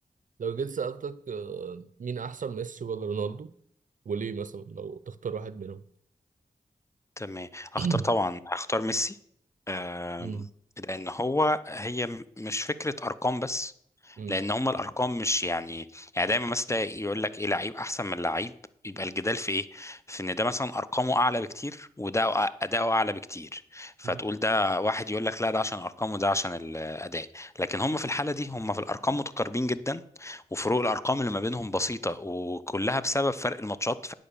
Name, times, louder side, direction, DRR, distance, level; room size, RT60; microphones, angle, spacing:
voice 1, 0.4-3.5 4.1-5.8 7.8-8.1 10.2-10.5 14.2-14.4 24.0-24.2, right 5 dB, 60° right, 0.5 m, -33 dB
voice 2, 7.2-9.2 9.7-10.4 10.8-13.7 14.0-18.5 18.8-34.1, left 1 dB, 20° left, 0.7 m, -29 dB
11.0 x 5.1 x 6.9 m
cardioid pair, 45°, 15 cm